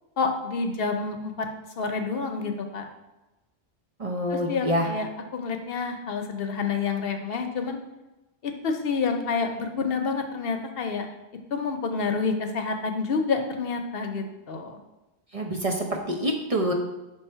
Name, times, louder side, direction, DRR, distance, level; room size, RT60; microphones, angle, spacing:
voice 1, 0.2-1.5 1.8-2.9 4.3-7.8 8.4-11.1 11.5-14.8, left 4 dB, 65° left, 5 dB, 0.8 m, -28 dB
voice 2, 4.0-4.9 15.3-16.7, equal, 40° right, 0 dB, 0.6 m, -26 dB
5.5 x 3.3 x 5.5 m, 1.0 s
omnidirectional pair, 1.1 m